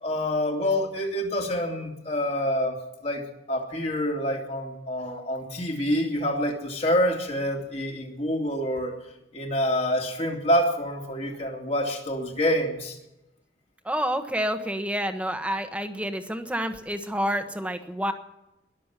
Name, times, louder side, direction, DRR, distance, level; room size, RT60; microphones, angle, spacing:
voice 1, 0.0-8.9 9.3-13.0, equal, 35° left, 1 dB, 3.0 m, -27 dB
voice 2, 13.8-18.1, equal, 10° right, 7 dB, 1.3 m, -28 dB
21.5 x 7.6 x 7.4 m, 0.93 s
head